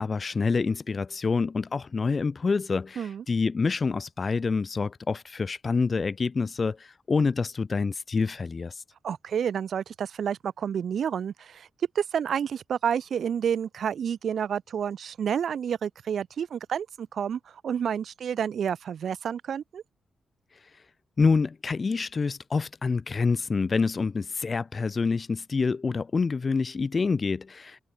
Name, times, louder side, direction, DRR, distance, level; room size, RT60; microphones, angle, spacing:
voice 1, 0.0-8.8 21.2-27.8, left 4 dB, 35° left, 1.9 m, -27 dB
voice 2, 9.0-11.7 12.0-19.8, right 8 dB, 65° right, 2.0 m, -29 dB
cardioid pair, 115°, 0 cm